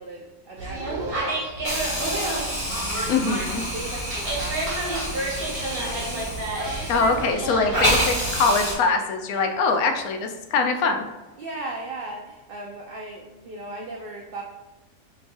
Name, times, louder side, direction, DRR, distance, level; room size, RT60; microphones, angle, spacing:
voice 1, 0.0-3.3 3.7-6.3 11.4-14.4, right 2 dB, 75° right, -1 dB, 0.5 m, -38 dB
sound 1, 0.6-8.4, right 1 dB, 45° right, 1.3 m, -30 dB
Hiss, 1.6-7.4 7.7-8.7, equal, 35° left, 1.6 m, -28 dB
voice 2, 3.1-3.6 6.9-11.0, left 4 dB, 80° left, 5 dB, 1.1 m, -23 dB
4.6 x 3.1 x 2.5 m, 1.1 s
omnidirectional pair, 1.5 m